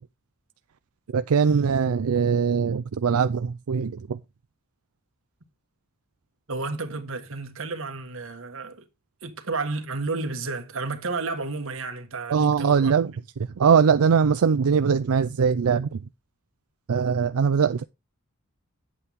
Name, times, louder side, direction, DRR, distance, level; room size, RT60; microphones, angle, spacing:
voice 1, 1.1-4.2 12.3-13.1 13.6-16.0 16.9-17.8, right 6 dB, 90° right, 0.5 m, -21 dB
voice 2, 6.5-8.8 9.2-13.2, right 3 dB, 65° right, 1.5 m, -32 dB
9.8 x 8.3 x 3.6 m
head